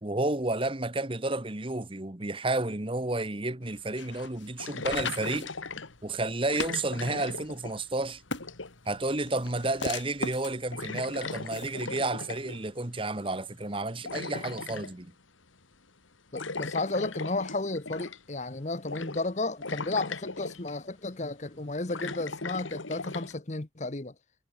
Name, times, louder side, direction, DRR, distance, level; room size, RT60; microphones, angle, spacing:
voice 1, 0.0-5.5 6.0-8.2 8.9-15.1, right 2 dB, 25° right, 1.2 m, -31 dB
sound 1, 3.6-3.7 4.6-5.9 6.5-8.0 8.3-8.9 9.6-9.9 10.2-10.4 10.7-12.6 13.7-14.9 16.4-18.3 18.9-19.3 19.6-20.7 21.5-23.4, left 3 dB, 85° left, 2.4 m, -38 dB
sound 2, 3.8-12.1, left 4 dB, 70° left, 6.7 m, -39 dB
voice 2, 16.3-24.1, left 2 dB, 35° left, 1.0 m, -33 dB
head